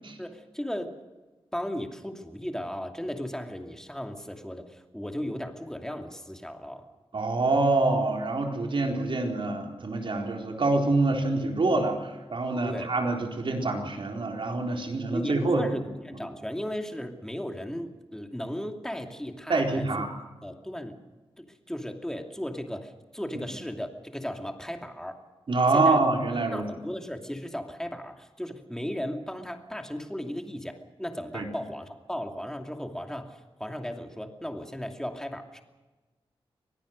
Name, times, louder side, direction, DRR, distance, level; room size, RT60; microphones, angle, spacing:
voice 1, 0.2-1.0 1.5-6.9 12.6-12.9 15.1-19.8 20.4-21.0 21.4-25.2 25.7-26.0 26.5-35.6, equal, 5° left, 4 dB, 2.7 m, -36 dB
voice 2, 7.1-15.6 19.5-20.1 25.5-26.7 31.3-31.5, right 2 dB, 60° right, 2 dB, 4.2 m, -26 dB
25.0 x 18.5 x 6.6 m, 1.2 s
wide cardioid pair, 85°, 10 cm